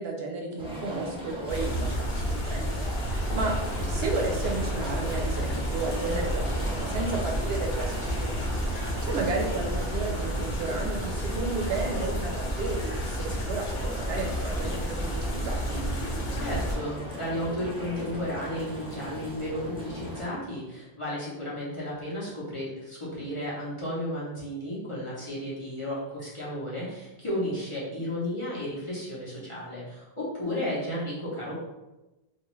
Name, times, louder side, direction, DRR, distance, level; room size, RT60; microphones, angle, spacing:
voice 1, 0.0-3.6 3.9-8.4 8.7-15.8, right 3 dB, 75° right, 0 dB, 0.8 m, -33 dB
sound 1, 0.6-20.3, equal, 10° right, 0.4 m, -38 dB
sound 2, 1.5-16.7, equal, 70° left, 0.9 m, -31 dB
voice 2, 16.4-31.5, left 1 dB, 35° left, -8 dB, 0.8 m, -33 dB
2.4 x 2.4 x 3.0 m, 1.0 s
omnidirectional pair, 1.1 m